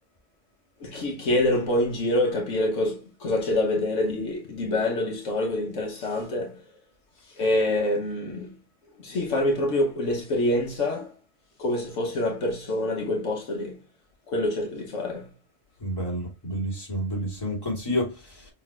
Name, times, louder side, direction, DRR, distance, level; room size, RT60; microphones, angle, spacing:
voice 1, 0.8-6.6 7.3-8.6 9.0-11.1 11.6-13.8 14.3-15.3, left 1 dB, 75° left, 1.2 m, -26 dB
voice 2, 15.8-18.5, equal, 20° left, 2.6 m, -29 dB
6.1 x 3.3 x 2.4 m
omnidirectional pair, 1.3 m